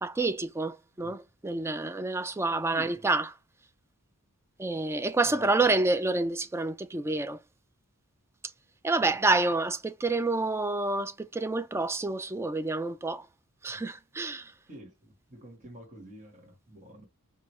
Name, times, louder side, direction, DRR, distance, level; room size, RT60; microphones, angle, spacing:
voice 1, 0.0-3.4 4.6-7.4 8.8-13.3 13.6-14.5, right 2 dB, 10° right, 0.3 m, -28 dB
voice 2, 2.7-3.1 5.2-5.5 9.0-9.2 13.7-13.8 14.7-17.1, right 1 dB, 35° right, 1.5 m, -48 dB
4.9 x 2.3 x 3.1 m
head